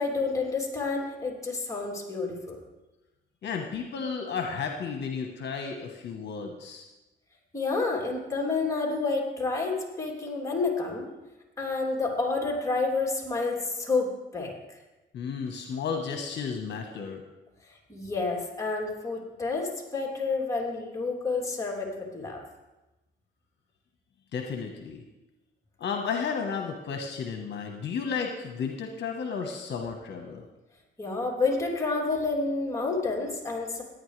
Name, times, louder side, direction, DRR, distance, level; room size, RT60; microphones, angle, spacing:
voice 1, 0.0-2.6 7.5-11.1 11.6-14.5 17.9-22.4 31.0-33.8, left 3 dB, 15° left, -2 dB, 3.0 m, -29 dB
voice 2, 3.4-6.8 15.1-17.2 24.3-25.0 25.8-30.4, left 6 dB, 60° left, 3 dB, 1.2 m, -33 dB
17.0 x 9.5 x 3.3 m, 1.0 s
cardioid pair, 90°, 20 cm